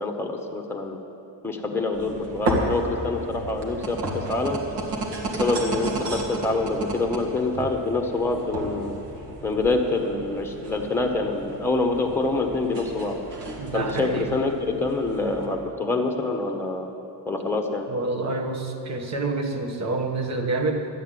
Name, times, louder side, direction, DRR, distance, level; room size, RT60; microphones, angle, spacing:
voice 1, 0.0-1.0 1.4-4.6 5.4-8.9 9.4-13.2 13.7-16.9 17.2-17.9, left 3 dB, 5° left, 2 dB, 1.1 m, -26 dB
sound 1, 1.9-15.5, right 1 dB, 75° right, 2.2 m, -33 dB
voice 2, 13.6-14.4 17.9-20.9, right 3 dB, 40° right, 4 dB, 1.3 m, -27 dB
12.5 x 8.1 x 9.1 m, 2.9 s
cardioid pair, 150°, 42 cm